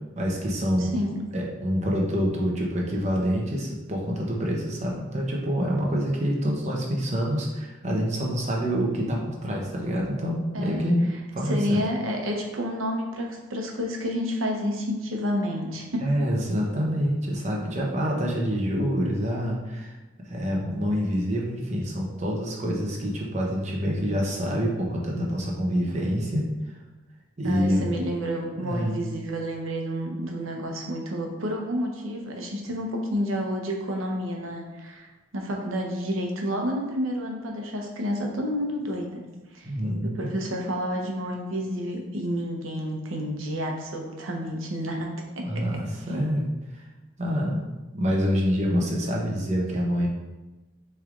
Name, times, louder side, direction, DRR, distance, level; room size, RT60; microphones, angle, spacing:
voice 1, 0.1-0.9 1.3-11.8 16.0-19.9 20.2-26.8 27.4-27.9 28.6-29.0 39.6-40.3 45.4-46.4 47.2-47.6 47.9-50.1, equal, 35° right, -2 dB, 0.8 m, -26 dB
voice 2, 0.8-1.2 10.5-10.8 11.4-16.0 27.4-39.2 39.5-39.7 40.0-45.1 45.4-45.6 46.1-46.3, equal, 90° right, 1 dB, 0.8 m, -30 dB
6.4 x 3.3 x 2.5 m, 1.1 s
head